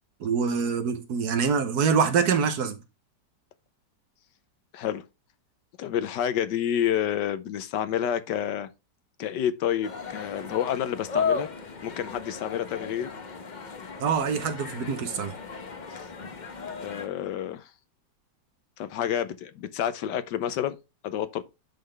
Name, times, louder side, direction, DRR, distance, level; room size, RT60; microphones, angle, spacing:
voice 1, 0.2-2.8 14.0-15.3, right 6 dB, 65° right, 1.4 m, -25 dB
voice 2, 5.8-8.7 9.2-11.5 11.8-13.1 16.8-17.7 18.8-20.8 21.0-21.4, left 10 dB, 80° left, 1.4 m, -29 dB
sound 1, 9.8-17.1, left 5 dB, 40° left, 0.6 m, -35 dB
10.5 x 3.9 x 3.3 m
omnidirectional pair, 1.9 m